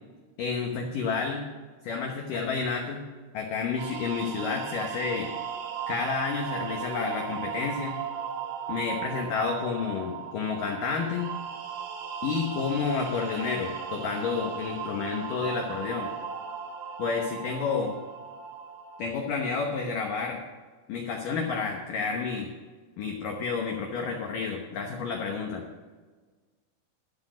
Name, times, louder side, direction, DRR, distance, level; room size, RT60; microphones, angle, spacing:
voice 1, 0.4-1.4 1.8-3.0 3.3-5.3 5.9-8.0 8.7-11.3 12.2-16.1 17.0-17.9 19.0-20.4 20.9-22.5 23.0-25.7, left 5 dB, 85° left, 2 dB, 1.9 m, -30 dB
sound 1, 3.8-19.1, right 7 dB, 90° right, 4.4 m, -37 dB
13.0 x 7.8 x 6.2 m, 1.4 s
omnidirectional pair, 5.6 m